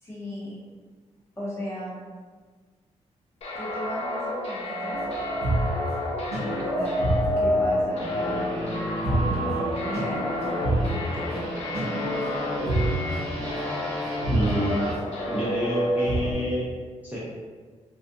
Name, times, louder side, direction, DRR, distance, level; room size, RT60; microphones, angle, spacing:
voice 1, 0.0-0.6 1.4-2.0 3.6-4.9 6.4-7.0 7.4-8.0 9.0-11.5, equal, 25° left, -8 dB, 0.8 m, -36 dB
sound 1, 3.4-16.3, left 1 dB, 60° left, 0.5 m, -30 dB
sound 2, 4.9-16.5, right 1 dB, 70° right, 0.7 m, -30 dB
sound 3, 8.0-14.9, equal, 35° right, 1.0 m, -36 dB
voice 2, 14.3-14.8 15.3-16.6 17.0-17.2, equal, 15° right, -9 dB, 0.4 m, -28 dB
2.4 x 2.2 x 2.6 m, 1.5 s
wide cardioid pair, 170°, 12 cm